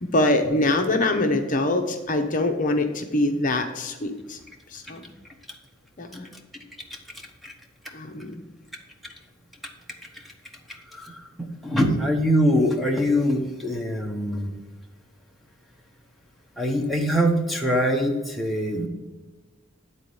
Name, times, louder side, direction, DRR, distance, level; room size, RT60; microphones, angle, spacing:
voice 1, 0.0-4.4 4.7-5.0 6.0-6.3 7.9-8.3, left 2 dB, 40° left, 5 dB, 0.7 m, -24 dB
voice 2, 11.6-14.5 16.6-18.9, equal, ahead, 2 dB, 0.9 m, -23 dB
9.2 x 4.1 x 6.8 m, 1.2 s
head